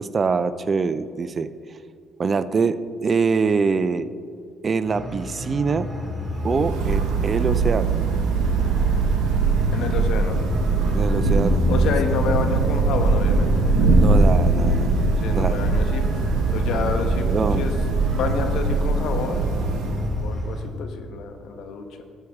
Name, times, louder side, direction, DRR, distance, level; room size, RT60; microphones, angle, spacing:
voice 1, 0.0-1.5 2.2-4.1 4.6-5.9 6.4-7.9 10.9-11.7 14.0-15.0 15.3-15.6 17.1-17.6, right 5 dB, 40° right, 14 dB, 0.5 m, -24 dB
sound 1, 4.9-20.6, left 2 dB, 5° right, 2.3 m, -29 dB
Thunder / Rain, 6.1-20.5, right 3 dB, 80° right, 1.2 m, -21 dB
voice 2, 9.7-10.4 11.7-13.9 15.2-16.2 16.5-17.7 18.1-19.4 20.2-22.0, left 5 dB, 70° left, 6 dB, 1.1 m, -29 dB
12.5 x 7.7 x 3.6 m, 2.2 s
supercardioid pair, 65°, 0 cm